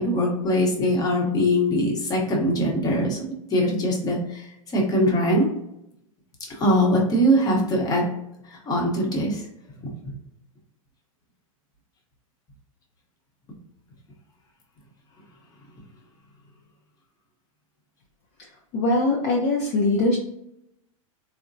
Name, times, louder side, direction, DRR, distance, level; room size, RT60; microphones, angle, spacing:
voice 1, 0.0-4.4 4.7-5.5 6.6-8.0 8.7-9.4, equal, 20° left, -2 dB, 0.9 m, -22 dB
voice 2, 18.7-20.2, left 2 dB, 40° left, -2 dB, 0.6 m, -21 dB
3.6 x 2.1 x 2.6 m, 0.81 s
hypercardioid pair, 125°, 18 cm